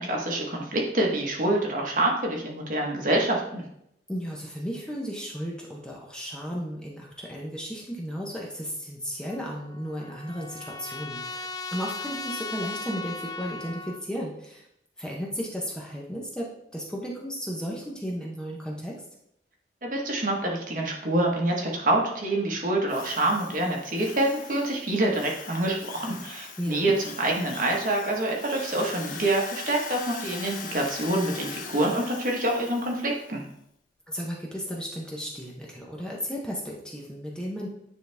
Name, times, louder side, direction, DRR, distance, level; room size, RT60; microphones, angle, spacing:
voice 1, 0.0-3.6 19.8-33.4, right 1 dB, 45° right, 0 dB, 1.3 m, -26 dB
voice 2, 4.1-14.6 15.0-19.0 26.6-26.9 34.1-37.7, equal, 5° left, -3 dB, 0.9 m, -34 dB
Trumpet, 9.3-14.0, left 3 dB, 20° left, 0.3 m, -37 dB
Drill, 22.9-33.3, left 6 dB, 45° left, 0.7 m, -41 dB
9.4 x 4.0 x 3.5 m, 0.75 s
head